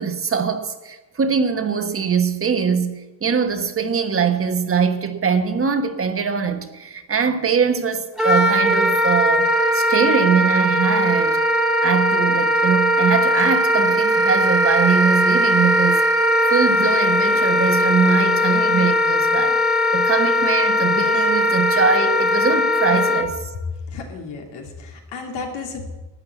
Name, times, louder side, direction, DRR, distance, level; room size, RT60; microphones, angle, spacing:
voice 1, 0.0-11.4 11.8-16.0 16.5-19.6 19.9-23.5, right 6 dB, 35° right, 1.3 m, -22 dB
Wind instrument woodwind instrument, 8.2-23.3, equal, ahead, 1.8 m, -19 dB
voice 2, 23.9-26.0, left 4 dB, 85° left, 2.8 m, -33 dB
12.0 x 8.7 x 8.3 m
cardioid pair, 120°, 40 cm